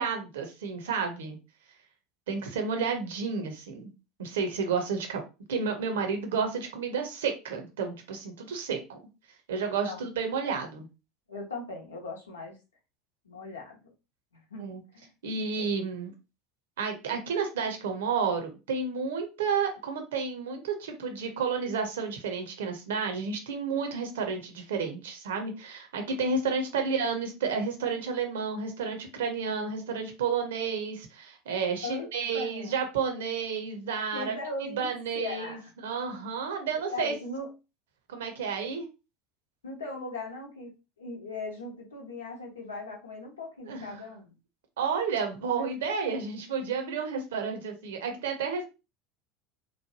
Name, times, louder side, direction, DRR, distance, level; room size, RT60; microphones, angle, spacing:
voice 1, 0.0-1.4 2.3-3.9 4.2-5.2 5.5-9.0 9.5-10.9 14.6-14.8 15.2-16.1 16.8-34.3 34.8-37.1 38.1-38.9 43.6-44.0 44.8-48.7, right 5 dB, 65° right, 5 dB, 0.7 m, -31 dB
voice 2, 11.3-12.6 13.2-13.9 14.5-15.1 15.6-15.7 31.8-32.1 32.3-32.8 34.1-34.9 35.1-35.7 36.9-37.5 38.6-38.7 39.6-40.7 41.0-44.3, left 3 dB, 75° left, 0 dB, 0.9 m, -39 dB
3.1 x 2.2 x 2.7 m, 0.29 s
figure-of-eight pair, 75°, 0 cm